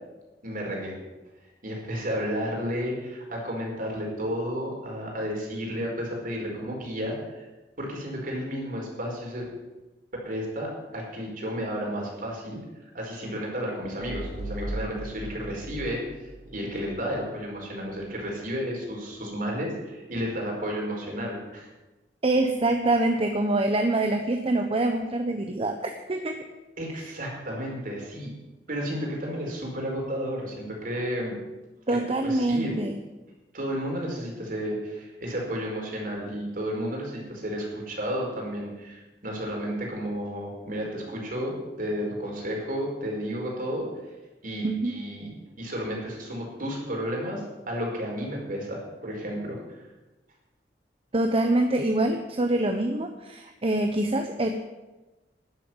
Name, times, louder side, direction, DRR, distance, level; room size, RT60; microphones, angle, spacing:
voice 1, 0.4-0.9 1.6-7.4 7.8-9.5 10.2-12.6 12.9-21.7 26.8-28.3 28.7-31.3 31.9-32.0 32.2-32.7 33.5-43.9 44.4-49.8, equal, 55° right, -1 dB, 4.7 m, -32 dB
sound 1, 14.0-17.3, right 1 dB, 75° right, 3.4 m, -38 dB
voice 2, 22.2-26.4 26.9-27.0 31.9-33.0 44.6-44.9 51.1-54.5, right 2 dB, 35° right, 5 dB, 0.9 m, -25 dB
12.5 x 7.7 x 9.5 m, 1.1 s
head